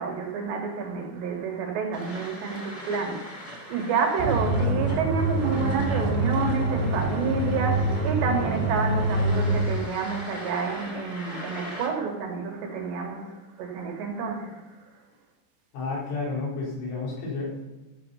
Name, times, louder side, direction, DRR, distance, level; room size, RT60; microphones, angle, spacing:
voice 1, 0.0-14.6, right 5 dB, 65° right, 2 dB, 3.4 m, -29 dB
sound 1, 1.9-11.9, equal, 40° left, 0.8 m, -42 dB
sound 2, 4.2-9.8, right 1 dB, 50° right, 3.7 m, -25 dB
voice 2, 15.7-17.7, left 3 dB, 70° left, -4 dB, 6.2 m, -31 dB
15.0 x 6.8 x 5.6 m, 1.1 s
omnidirectional pair, 5.8 m